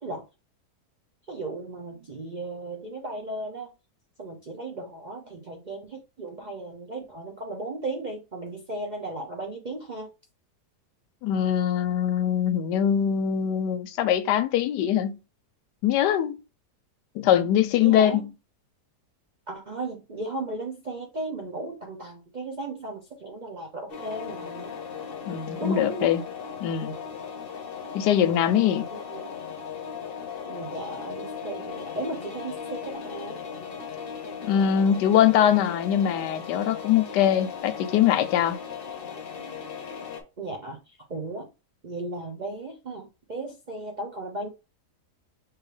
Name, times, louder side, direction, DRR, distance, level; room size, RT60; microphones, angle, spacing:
voice 1, 1.3-3.7 4.2-10.1 17.8-18.2 19.5-24.7 25.6-26.2 28.9-29.3 30.4-33.4 40.4-41.5 41.8-44.5, right 2 dB, 55° right, 0.4 m, -35 dB
voice 2, 11.2-15.2 15.8-16.4 17.2-18.3 25.3-26.2 26.6-26.9 27.9-28.9 34.5-38.6, left 10 dB, 90° left, 1.2 m, -22 dB
sound 1, 23.9-40.2, left 6 dB, 50° left, 0.7 m, -37 dB
4.7 x 3.1 x 3.2 m
omnidirectional pair, 1.8 m